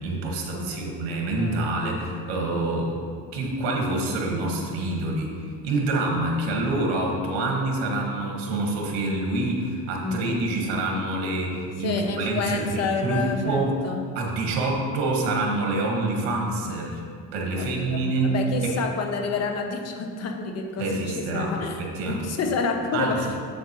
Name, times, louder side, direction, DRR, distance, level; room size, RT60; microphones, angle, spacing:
voice 1, 0.0-3.0 3.3-5.3 5.6-13.8 14.2-17.0 17.3-18.3 18.6-18.8 20.8-21.5 21.8-22.2 22.9-23.2, right 2 dB, 75° right, 0 dB, 1.6 m, -26 dB
voice 2, 11.8-14.0 17.5-21.8 22.1-23.4, left 4 dB, 35° left, 4 dB, 0.8 m, -29 dB
7.4 x 7.0 x 3.0 m, 2.1 s
cardioid pair, 140°, 45 cm